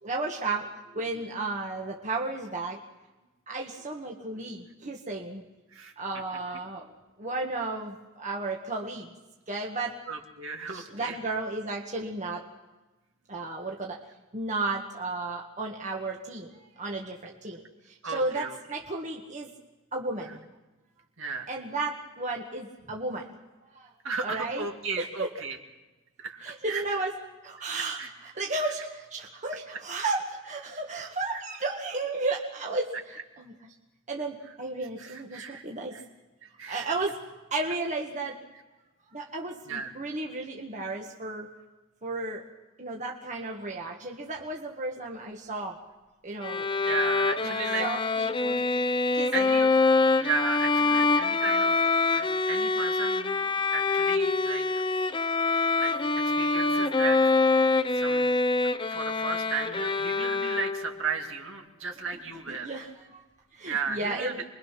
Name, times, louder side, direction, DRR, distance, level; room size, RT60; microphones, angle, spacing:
voice 1, 0.0-2.8 3.5-5.4 6.0-6.9 7.2-9.1 9.5-9.9 10.7-12.4 13.3-14.0 14.3-19.5 19.9-20.4 21.5-23.4 23.7-23.9 24.2-24.7 25.0-25.3 26.4-27.1 27.4-33.5 34.1-35.9 36.7-37.2 37.5-38.4 39.1-41.5 42.0-42.4 42.8-45.8 46.2-46.7 47.4-48.6 49.1-49.5 62.5-63.2 63.5-64.4, right 2 dB, 35° right, 0 dB, 1.6 m, -33 dB
voice 2, 10.1-11.2 18.0-18.6 21.2-21.5 24.0-25.6 26.2-27.0 28.0-28.1 35.0-35.6 35.9-36.0 36.4-36.9 39.6-39.9 46.9-47.9 49.3-49.7 50.2-51.7 52.1-53.4 53.7-54.6 55.7-56.0 56.2-57.2 57.9-58.3 58.9-62.7 63.7-64.4, right 5 dB, 65° right, 2 dB, 2.5 m, -34 dB
Bowed string instrument, 46.4-61.1, left 3 dB, 25° left, 0.7 m, -25 dB
28.0 x 22.0 x 5.9 m, 1.1 s
head